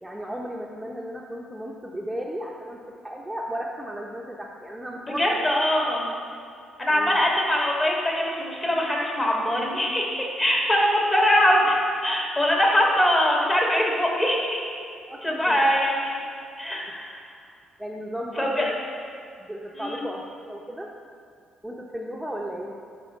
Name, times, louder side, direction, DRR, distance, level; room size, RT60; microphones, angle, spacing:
voice 1, 0.0-2.8 3.0-5.5 6.9-7.2 15.1-15.6 16.8-16.9 17.8-18.7 19.4-20.9 21.6-22.7, equal, 5° right, -2 dB, 0.7 m, -35 dB
voice 2, 5.1-6.0 6.8-14.7 15.2-16.2 16.6-17.2 18.4-18.7 19.8-20.0, left 1 dB, 30° left, -2 dB, 2.2 m, -22 dB
10.5 x 5.0 x 4.4 m, 2.3 s
cardioid pair, 80°, 0 cm